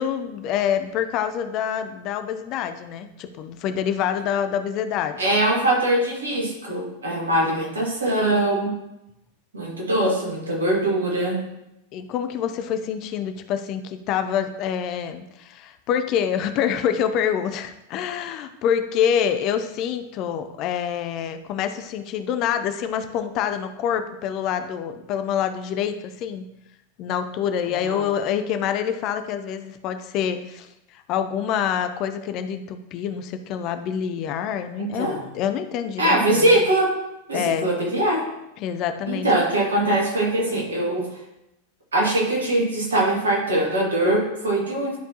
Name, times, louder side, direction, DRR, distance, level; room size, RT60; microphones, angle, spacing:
voice 1, 0.0-5.2 11.9-26.4 27.0-36.6 37.3-37.7 38.6-39.3, left 8 dB, 40° left, 9 dB, 0.6 m, -26 dB
voice 2, 5.2-8.7 9.5-11.5 27.7-28.1 34.8-35.2 36.0-37.0 37.3-38.3 39.1-41.1 41.9-45.0, right 1 dB, 70° right, -2 dB, 2.2 m, -22 dB
11.5 x 4.5 x 2.9 m, 0.88 s
figure-of-eight pair, 90°, 0 cm